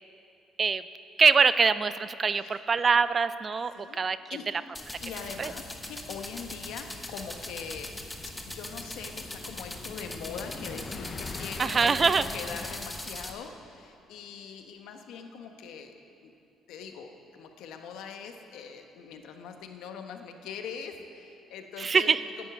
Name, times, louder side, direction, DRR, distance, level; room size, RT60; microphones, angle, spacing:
voice 1, 1.2-4.2 4.5-4.6 5.4-5.5 11.6-12.3 21.8-22.2, right 5 dB, 30° right, 15 dB, 0.4 m, -23 dB
sound 1, 4.7-13.3, left 1 dB, 10° left, 1.1 m, -40 dB
voice 2, 5.0-8.1 8.4-15.9 16.2-16.3 16.7-22.1 22.4-22.5, left 6 dB, 80° left, 5 dB, 1.2 m, -42 dB
sound 2, 5.8-12.8, left 5 dB, 35° left, 0.8 m, -44 dB
10.5 x 9.8 x 8.7 m, 2.8 s
cardioid pair, 125°, 0 cm